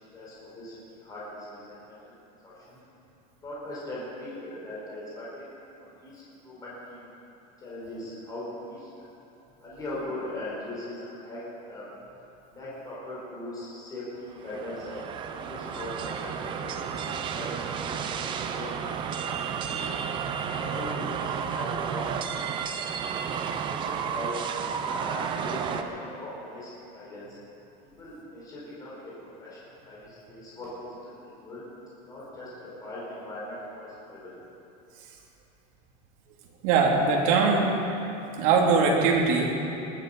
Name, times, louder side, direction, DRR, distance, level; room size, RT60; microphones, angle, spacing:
voice 1, 0.1-2.2 2.4-2.8 3.4-5.4 5.8-7.1 7.6-8.9 9.6-11.8 12.5-18.2 18.5-18.7 19.2-20.0 20.5-22.0 22.3-22.4 22.9-23.0 23.6-23.8 24.1-24.5 24.8-27.2 28.0-29.1 29.4-29.6 29.8-31.6 32.1-34.3, left 1 dB, 15° left, -7 dB, 4.4 m, -40 dB
sound 1, 14.3-25.8, right 7 dB, 25° right, 0.6 m, -32 dB
voice 2, 36.6-37.7 38.4-39.5, right 4 dB, 55° right, -1 dB, 2.8 m, -21 dB
20.5 x 12.0 x 5.4 m, 3.0 s
supercardioid pair, 170°, 21 cm